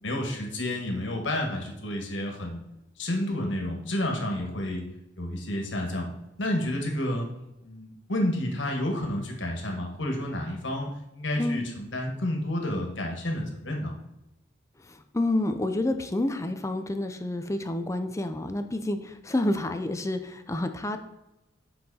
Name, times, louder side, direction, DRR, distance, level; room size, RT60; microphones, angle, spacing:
voice 1, 0.0-2.6 3.0-4.8 5.2-6.1 6.4-7.3 7.6-13.9, left 1 dB, 70° left, 2 dB, 1.7 m, -30 dB
voice 2, 14.8-21.0, left 1 dB, 15° left, 7 dB, 0.5 m, -29 dB
7.8 x 5.6 x 4.2 m, 0.94 s
head